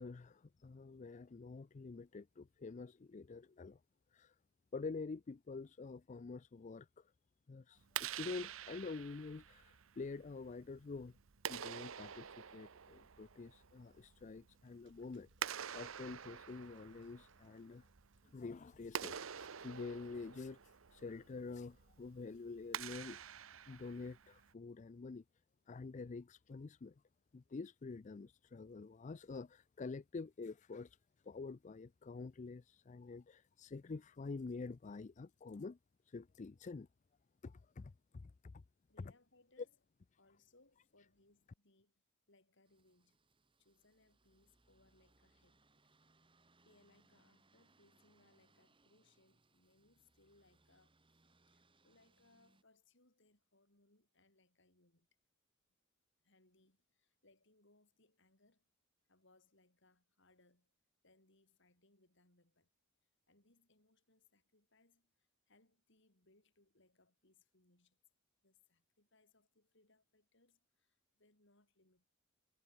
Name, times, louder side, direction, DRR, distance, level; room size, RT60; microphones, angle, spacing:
voice 1, 0.0-3.8 4.1-4.3 4.7-7.0 7.5-11.1 11.5-17.8 18.3-20.6 20.9-23.2 23.7-25.2 25.7-26.9 27.3-31.0 31.2-35.8 36.1-36.9 37.4-38.6, left 4 dB, 35° left, 0.4 m, -47 dB
Clapping, 7.8-24.5, right 9 dB, 80° right, 0.9 m, -48 dB
sound 1, 14.6-19.7, right 9 dB, 65° right, 6.3 m, -79 dB
voice 2, 38.9-39.8 40.2-42.0 42.3-43.2 43.6-45.8 46.6-55.1 56.2-58.7 59.1-60.7 61.0-62.7 63.3-68.0 68.4-72.0, left 2 dB, 60° left, 6.3 m, -72 dB
sound 2, 42.6-52.6, right 2 dB, 25° right, 2.4 m, -74 dB
head